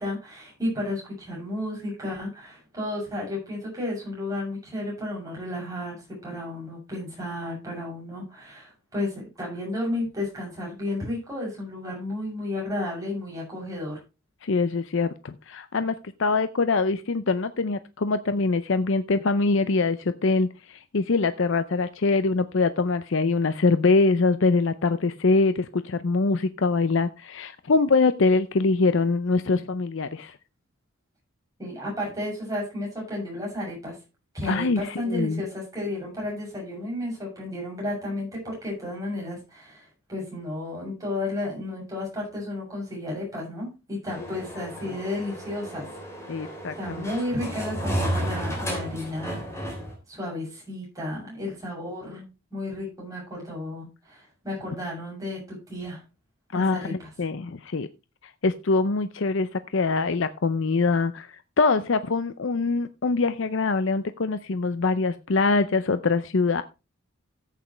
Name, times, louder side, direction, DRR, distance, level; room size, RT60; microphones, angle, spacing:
voice 1, 0.0-5.9 6.2-14.0 31.6-34.0 34.3-45.9 46.3-49.8 50.1-56.0 56.5-57.1, left 1 dB, 15° right, -3 dB, 7.2 m, -33 dB
voice 2, 14.4-15.9 16.2-30.4 34.4-35.4 46.3-47.1 56.5-57.9 58.4-66.6, left 3 dB, 60° left, 12 dB, 0.5 m, -24 dB
sound 1, 44.1-49.9, equal, 10° left, 3.6 m, -32 dB
14.0 x 8.4 x 3.2 m, 0.28 s
head